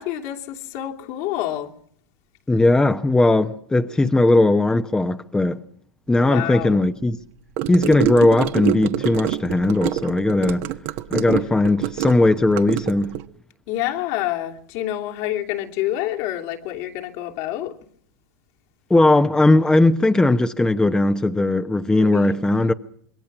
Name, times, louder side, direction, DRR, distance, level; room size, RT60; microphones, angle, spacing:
voice 1, 0.0-1.7 6.1-6.8 11.3-11.6 13.7-17.8 21.9-22.5, left 13 dB, 60° left, 2.9 m, -28 dB
voice 2, 2.5-5.6 6.1-7.2 7.7-10.7 11.1-13.1 18.9-22.7, left 2 dB, 10° left, 0.9 m, -18 dB
Gurgling / Car passing by / Sink (filling or washing), 7.6-13.2, right 14 dB, 60° right, 1.3 m, -26 dB
26.0 x 21.5 x 6.1 m
hypercardioid pair, 110°, 9 cm